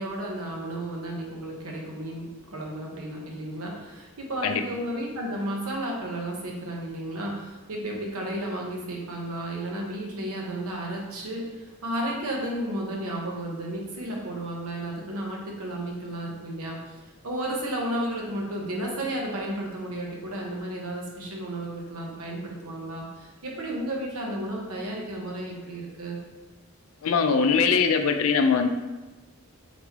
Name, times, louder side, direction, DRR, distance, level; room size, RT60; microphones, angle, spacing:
voice 1, 0.0-16.9 17.2-26.2, right 1 dB, 85° right, -1 dB, 1.0 m, -33 dB
voice 2, 27.0-28.7, left 5 dB, 70° left, 6 dB, 0.4 m, -21 dB
3.9 x 3.2 x 3.5 m, 1.1 s
head